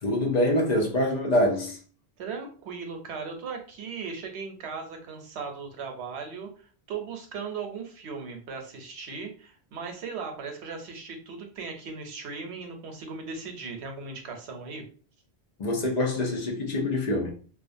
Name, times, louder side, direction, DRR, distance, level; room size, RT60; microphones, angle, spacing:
voice 1, 0.0-1.8 15.6-17.3, left 1 dB, 50° left, 0.6 m, -25 dB
voice 2, 2.2-6.5 6.9-14.8, right 5 dB, 90° right, 0.9 m, -37 dB
2.4 x 2.2 x 2.5 m
omnidirectional pair, 1.1 m